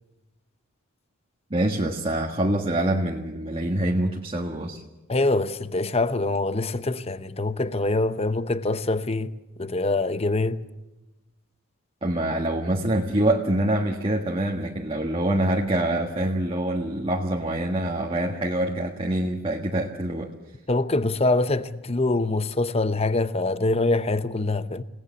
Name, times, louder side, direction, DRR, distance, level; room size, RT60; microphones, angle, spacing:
voice 1, 1.5-4.8 12.0-20.3, right 1 dB, 25° right, 1.5 m, -25 dB
voice 2, 5.1-10.6 20.7-24.8, left 2 dB, 30° left, 0.8 m, -24 dB
29.5 x 18.0 x 7.0 m
head